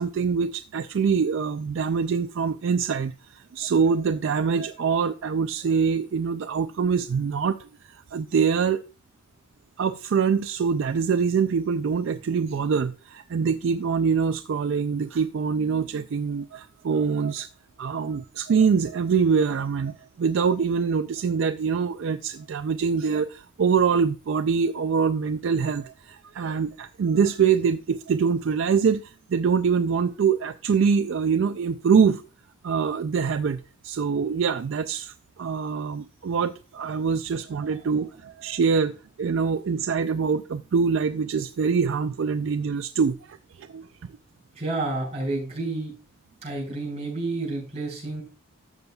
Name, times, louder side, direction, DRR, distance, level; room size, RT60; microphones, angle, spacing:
voice 1, 0.0-8.8 9.8-17.5 17.8-32.2 32.6-43.9, right 6 dB, 65° right, 0.4 m, -24 dB
voice 2, 44.5-45.9 46.4-48.2, right 2 dB, 30° right, 4.9 m, -30 dB
13.0 x 6.9 x 2.3 m
head